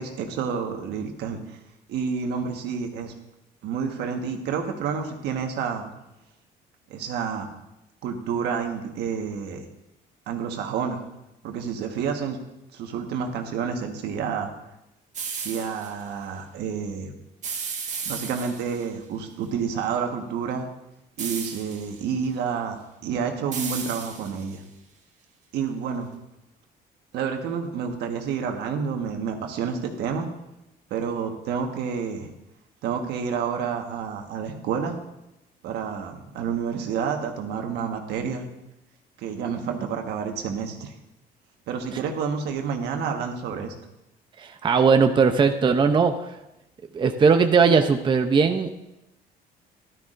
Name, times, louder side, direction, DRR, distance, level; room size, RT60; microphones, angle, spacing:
voice 1, 0.0-1.6 1.9-3.1 3.6-5.9 6.9-7.5 8.0-9.6 10.3-11.0 11.4-12.4 12.7-14.5 15.3-17.1 18.0-20.7 21.2-24.6 25.5-26.1 27.1-30.3 30.9-32.3 32.8-35.0 35.6-38.5 39.2-40.9 41.7-43.7, right 6 dB, 80° right, 4 dB, 1.4 m, -29 dB
sound 1, 15.1-15.9 17.4-18.9 21.2-22.0 23.5-24.6, right 6 dB, 45° right, 1.5 m, -34 dB
voice 2, 44.4-46.4 46.9-48.7, right 5 dB, 30° right, 6 dB, 0.6 m, -19 dB
13.5 x 12.0 x 2.6 m, 0.90 s
cardioid pair, 110°, 17 cm